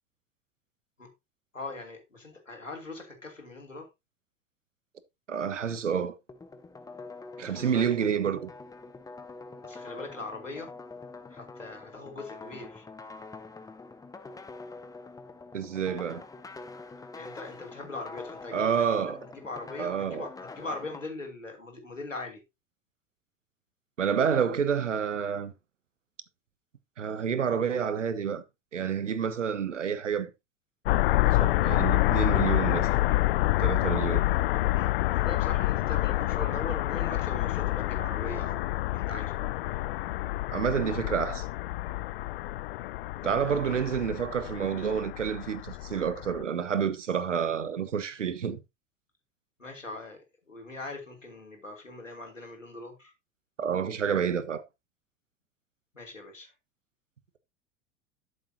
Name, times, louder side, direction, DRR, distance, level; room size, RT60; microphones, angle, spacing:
voice 1, 1.5-3.9 7.4-7.8 9.6-10.7 11.3-12.9 17.1-18.7 18.9-22.4 34.7-39.5 43.2-43.8 49.6-53.1 55.9-56.5, left 2 dB, 85° left, 3.1 m, -41 dB
voice 2, 5.3-6.2 7.4-8.5 15.5-16.2 18.5-19.2 19.8-20.3 24.0-25.5 27.0-28.4 28.7-30.3 31.2-32.9 33.6-34.2 40.5-41.5 43.2-48.6 53.6-54.6, right 7 dB, 75° right, 1.3 m, -29 dB
sound 1, 6.3-21.0, left 3 dB, 10° left, 1.1 m, -45 dB
sound 2, 30.9-46.4, left 17 dB, 50° left, 0.5 m, -28 dB
12.5 x 7.1 x 2.8 m
figure-of-eight pair, 85°, 37 cm